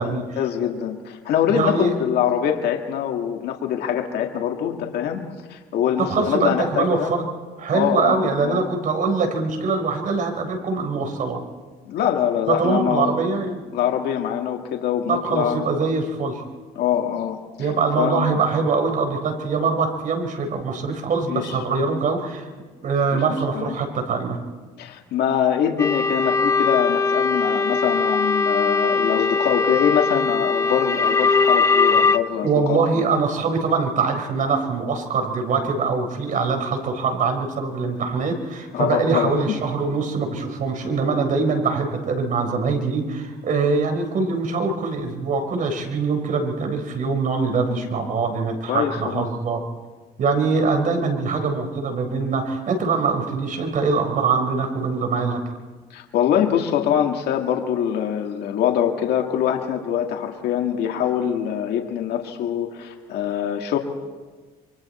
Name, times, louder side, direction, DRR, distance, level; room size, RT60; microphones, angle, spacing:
voice 1, 0.0-5.2 5.5-7.1 7.7-8.6 11.9-13.2 13.7-15.7 16.8-17.4 18.0-18.4 21.3-21.6 23.1-23.2 23.5-23.8 24.8-33.0 38.7-39.6 47.5-47.9 48.7-49.2 55.9-63.8, left 9 dB, 75° left, 2 dB, 2.0 m, -24 dB
voice 2, 1.5-2.0 6.0-7.2 7.6-11.4 12.5-13.6 15.1-16.4 17.6-22.5 22.8-24.4 32.4-49.6 50.2-55.4, right 4 dB, 50° right, 4 dB, 4.3 m, -23 dB
sound 1, 25.8-32.2, left 4 dB, 15° left, 0.7 m, -20 dB
27.0 x 24.0 x 4.3 m, 1.4 s
cardioid pair, 110°, 17 cm